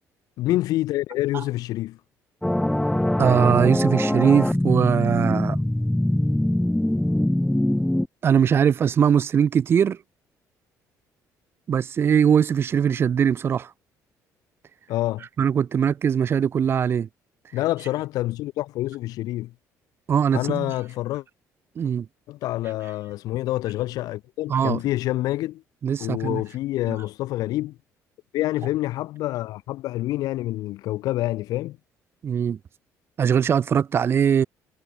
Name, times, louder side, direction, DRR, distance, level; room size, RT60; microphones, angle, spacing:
voice 1, 0.4-2.0 14.9-15.3 17.5-19.5 20.3-21.2 22.3-25.6 26.0-27.8 28.3-31.8, left 16 dB, 80° left, 0.9 m, -27 dB
sound 1, 2.4-8.1, left 1 dB, 5° left, 0.5 m, -22 dB
voice 2, 3.2-5.6 8.2-10.0 11.7-13.7 15.4-17.1 20.1-20.7 21.8-22.1 24.5-24.8 25.8-26.4 26.9-27.0 32.2-32.6 33.2-34.4, right 8 dB, 40° right, 0.9 m, -21 dB
cardioid pair, 135°, 6 cm